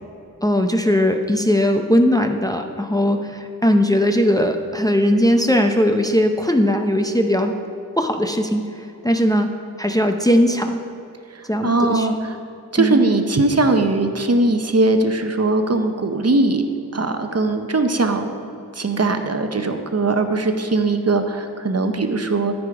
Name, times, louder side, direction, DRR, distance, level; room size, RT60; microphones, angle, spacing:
voice 1, 0.4-7.5 8.0-8.6 9.0-9.5 9.8-10.8 11.5-12.1 12.8-13.0, equal, 10° left, 4 dB, 0.6 m, -18 dB
voice 2, 11.3-12.4 12.7-16.6 16.9-18.3 18.7-22.5, right 2 dB, 45° right, 6 dB, 0.8 m, -20 dB
13.5 x 5.0 x 4.8 m, 2.8 s
wide cardioid pair, 60°, 35 cm